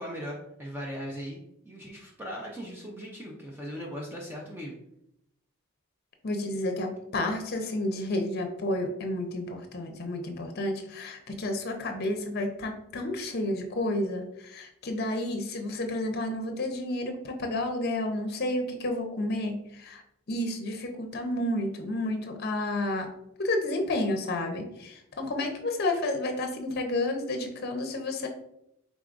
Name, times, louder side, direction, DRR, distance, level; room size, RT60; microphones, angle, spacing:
voice 1, 0.0-4.8, equal, 10° right, -2 dB, 0.5 m, -39 dB
voice 2, 6.2-20.0 20.3-23.1 23.4-28.3, left 1 dB, 50° left, 5 dB, 0.6 m, -31 dB
4.8 x 3.8 x 2.5 m, 0.77 s
head